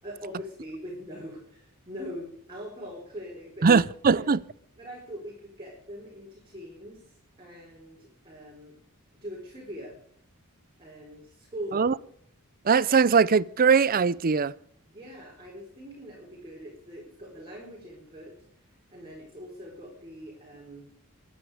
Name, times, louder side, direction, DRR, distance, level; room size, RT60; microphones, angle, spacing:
voice 1, 0.0-4.2 4.8-8.8 9.2-10.0 10.8-11.9 14.9-20.9, equal, 25° right, 4.4 m, -42 dB
voice 2, 3.6-4.4 11.7-11.9 12.7-14.5, right 5 dB, 40° right, 0.5 m, -21 dB
23.0 x 9.5 x 5.0 m
head